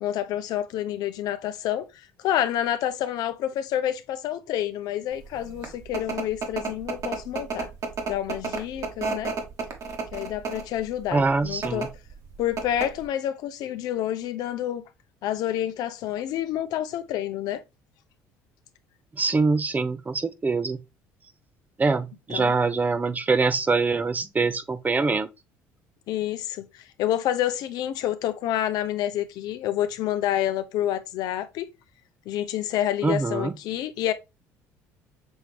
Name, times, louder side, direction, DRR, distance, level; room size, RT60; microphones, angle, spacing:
voice 1, 0.0-7.7 8.1-9.3 10.1-11.9 12.4-14.8 15.2-17.6 22.3-22.5 26.1-31.7 32.3-34.1, left 11 dB, 65° left, 0.5 m, -28 dB
sound 1, 5.3-10.8 11.5-11.9 12.2-12.3 12.6-13.1, right 4 dB, 55° right, 1.5 m, -31 dB
voice 2, 11.1-11.9 19.2-20.8 21.8-25.3 33.0-33.5, right 4 dB, 25° right, 0.6 m, -24 dB
6.2 x 3.2 x 2.3 m
supercardioid pair, 70°, 7 cm